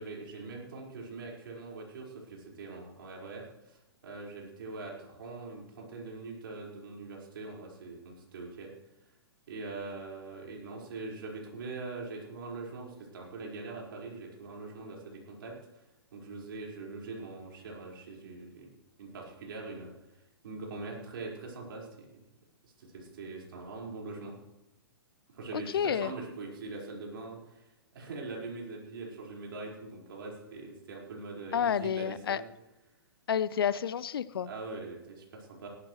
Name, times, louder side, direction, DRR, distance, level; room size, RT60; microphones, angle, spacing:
voice 1, 0.0-8.7 9.5-15.6 16.1-18.7 19.0-19.9 20.4-22.2 22.6-24.3 25.3-27.6 27.9-32.5 34.4-35.7, right 3 dB, 60° right, -2 dB, 4.9 m, -42 dB
voice 2, 25.5-26.1 31.5-32.4 33.3-34.5, left 8 dB, 70° left, 18 dB, 0.6 m, -30 dB
18.0 x 12.0 x 3.2 m, 0.95 s
figure-of-eight pair, 120°, 13 cm